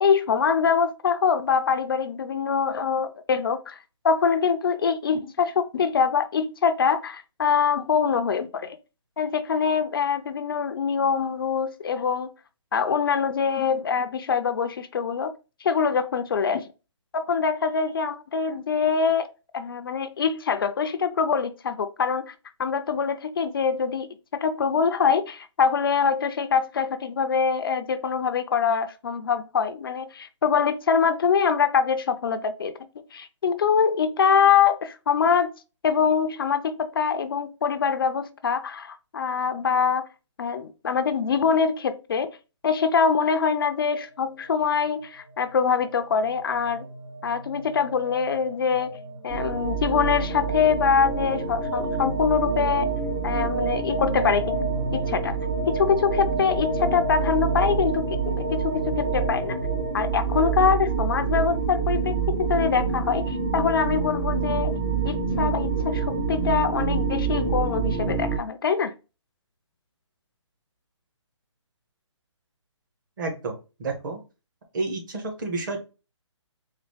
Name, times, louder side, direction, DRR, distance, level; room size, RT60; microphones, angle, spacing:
voice 1, 0.0-3.8 4.0-8.8 9.2-12.3 12.7-15.3 15.6-16.6 17.1-19.3 19.5-22.3 22.6-35.5 35.8-40.1 40.4-42.3 42.6-46.9 47.2-49.0 49.2-52.9 53.2-54.4 54.9-55.4 55.7-59.6 59.9-64.8 65.0-68.9, left 6 dB, 45° left, 0.4 m, -24 dB
sound 1, 43.8-59.9, right 1 dB, 65° right, 1.2 m, -33 dB
sound 2, 49.3-68.4, right 5 dB, 15° right, 0.4 m, -27 dB
voice 2, 73.2-73.5 73.8-74.2 74.7-75.8, right 3 dB, 40° right, 1.2 m, -30 dB
4.1 x 2.6 x 3.1 m
hypercardioid pair, 160°, 16 cm